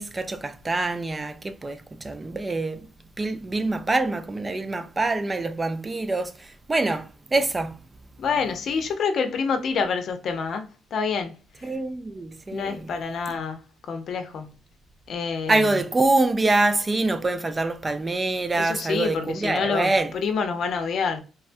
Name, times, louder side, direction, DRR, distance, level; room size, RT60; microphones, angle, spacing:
voice 1, 0.0-2.9 3.2-7.8 11.6-12.9 13.3-13.4 15.5-20.1, right 2 dB, 25° right, 0.4 m, -25 dB
voice 2, 8.2-11.7 12.5-13.6 13.9-14.5 15.1-15.8 18.5-21.2, left 5 dB, 65° left, 0.6 m, -27 dB
3.5 x 2.2 x 2.5 m
cardioid pair, 90°, 0 cm